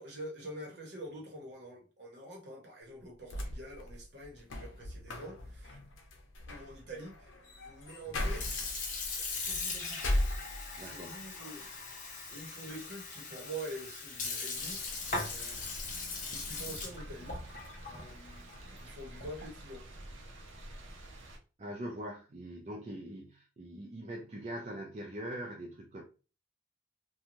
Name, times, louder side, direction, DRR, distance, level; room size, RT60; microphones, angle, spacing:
voice 1, 0.0-5.8 6.5-7.3 7.6-8.6 9.4-10.2 10.8-11.7 12.0-19.8, right 1 dB, 60° right, 1.0 m, -46 dB
sound 1, 3.2-11.0 11.4-12.2, left 1 dB, 90° left, 0.6 m, -38 dB
Sink (filling or washing) / Fill (with liquid), 8.0-19.6, left 4 dB, 40° left, 0.6 m, -40 dB
voice 2, 10.8-11.2 21.6-26.0, right 1 dB, 35° right, 0.4 m, -42 dB
sound 2, 14.5-21.4, right 1 dB, 90° right, 0.6 m, -49 dB
2.5 x 2.3 x 3.0 m
head